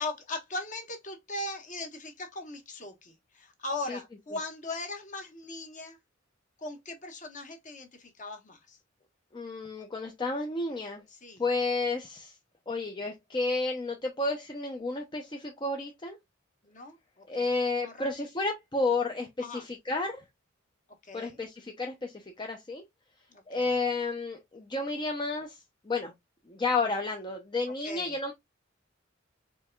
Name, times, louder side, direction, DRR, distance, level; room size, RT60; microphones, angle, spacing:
voice 1, 0.0-6.0 6.6-8.8 11.2-11.4 16.6-17.5 17.8-17.9 19.4-19.6 21.1-21.4 23.3-23.7 27.8-28.1, left 2 dB, 40° left, 1.1 m, -39 dB
voice 2, 9.3-11.0 11.4-12.4 12.7-16.2 17.3-20.2 21.1-22.8 23.5-25.6 25.8-26.1 26.5-28.3, left 3 dB, 25° left, 0.6 m, -31 dB
4.5 x 3.3 x 2.2 m
head